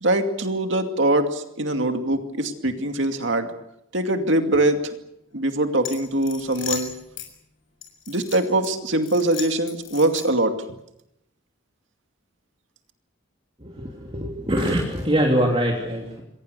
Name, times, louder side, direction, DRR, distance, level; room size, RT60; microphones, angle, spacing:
voice 1, 0.0-3.5 3.9-4.9 5.3-6.9 8.1-10.6, right 1 dB, 65° right, 6 dB, 2.4 m, -22 dB
sound 1, 5.8-7.3 7.8-8.7 9.0-10.5, left 9 dB, 70° left, 6.9 m, -35 dB
voice 2, 13.6-16.2, equal, 30° right, 0 dB, 3.1 m, -23 dB
28.0 x 22.5 x 6.8 m, 0.81 s
head